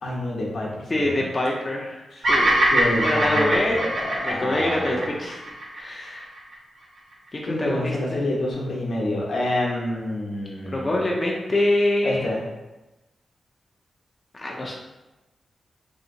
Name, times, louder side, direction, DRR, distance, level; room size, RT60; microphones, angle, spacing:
voice 1, 0.0-1.2 2.1-2.2 2.7-5.1 5.9-6.1 7.4-11.1 12.0-12.4, left 1 dB, 70° left, -4 dB, 0.8 m, -28 dB
voice 2, 0.9-2.5 2.9-3.7 4.2-5.4 5.7-6.3 7.3-8.2 10.7-12.3 14.3-14.7, left 1 dB, 25° left, -2 dB, 0.4 m, -25 dB
Bird vocalization bird call bird song, 2.2-6.5, right 1 dB, 80° right, 1.0 m, -23 dB
3.3 x 2.8 x 2.6 m, 1.1 s
wide cardioid pair, 110°, 0 cm